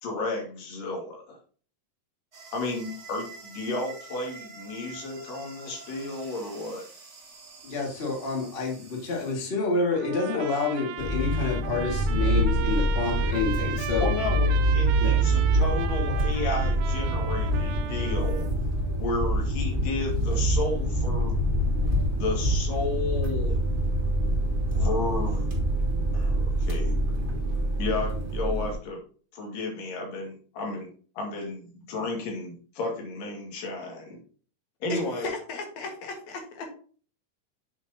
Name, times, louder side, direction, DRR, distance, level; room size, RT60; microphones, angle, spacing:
voice 1, 0.0-1.4 2.5-6.9 14.0-18.5 19.0-21.4 22.1-23.6 24.7-25.5 26.1-27.0 27.8-29.0 29.3-30.9 31.2-34.2 34.8-35.3, left 3 dB, 80° left, -1 dB, 3.8 m, -33 dB
sound 1, 2.3-9.3, right 4 dB, 60° right, 0.7 m, -47 dB
voice 2, 7.6-14.1 15.0-15.2, left 4 dB, 20° left, -1 dB, 1.7 m, -28 dB
Trumpet, 9.9-18.5, right 10 dB, 85° right, 2.3 m, -36 dB
sound 2, 11.0-28.7, right 1 dB, 30° right, 1.0 m, -25 dB
voice 3, 34.9-36.6, left 3 dB, 60° left, 2 dB, 2.9 m, -35 dB
8.2 x 7.2 x 2.9 m, 0.41 s
omnidirectional pair, 3.8 m